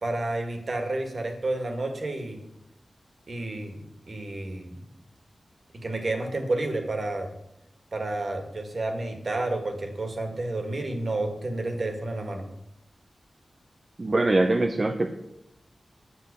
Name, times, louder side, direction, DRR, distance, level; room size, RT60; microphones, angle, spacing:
voice 1, 0.0-2.4 3.3-3.8 4.1-4.7 5.7-7.3 7.9-12.5, right 2 dB, 55° right, 4 dB, 2.1 m, -30 dB
voice 2, 14.0-15.1, right 2 dB, 40° right, 4 dB, 0.8 m, -23 dB
7.9 x 7.8 x 7.0 m, 0.82 s
wide cardioid pair, 70°, 0 cm